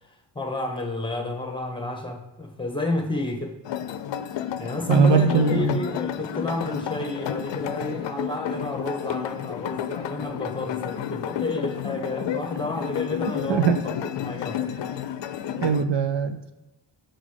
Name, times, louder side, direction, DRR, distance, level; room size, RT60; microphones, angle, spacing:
voice 1, 0.0-3.6 4.6-13.7 14.2-14.7, left 2 dB, 10° left, 3 dB, 1.2 m, -30 dB
sound 1, 3.6-15.8, left 9 dB, 85° left, 0.5 m, -31 dB
voice 2, 4.9-5.8 13.5-13.8 15.6-16.4, right 5 dB, 75° right, 9 dB, 0.7 m, -20 dB
6.4 x 4.0 x 4.7 m, 0.99 s
wide cardioid pair, 95°, 43 cm